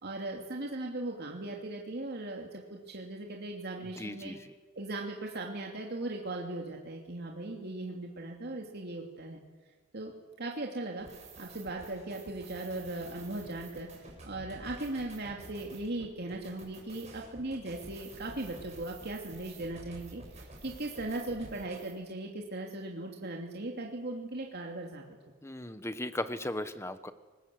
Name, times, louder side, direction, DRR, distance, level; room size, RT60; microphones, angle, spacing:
voice 1, 0.0-4.3 4.7-9.4 9.9-10.1 10.4-11.1 11.4-13.9 14.2-25.2, right 2 dB, 55° right, 0 dB, 2.9 m, -38 dB
voice 2, 4.0-4.4 25.4-27.1, left 1 dB, 15° left, 11 dB, 1.2 m, -37 dB
sound 1, 11.0-21.9, right 2 dB, 35° right, 7.5 m, -50 dB
29.5 x 20.0 x 7.9 m, 1.4 s
head